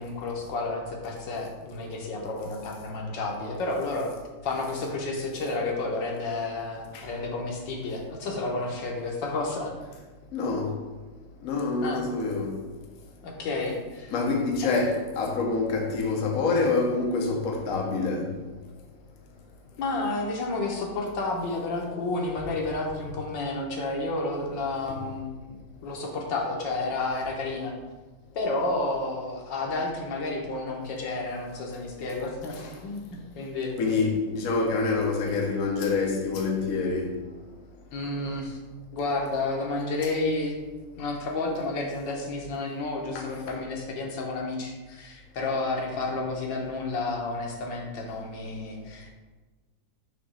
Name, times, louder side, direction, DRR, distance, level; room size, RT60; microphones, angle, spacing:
voice 1, 0.0-4.1 4.4-9.7 11.8-12.0 13.2-14.1 14.6-14.7 19.8-27.7 28.3-33.7 37.9-38.6 38.9-40.6 41.0-49.1, left 2 dB, 80° left, 1.6 m, -31 dB
voice 2, 10.3-10.7 11.4-12.6 14.1-18.3 24.9-25.0 32.5-32.7 33.8-37.2 43.1-43.6, left 3 dB, 55° left, 1.1 m, -26 dB
5.9 x 2.9 x 5.4 m
omnidirectional pair, 1.9 m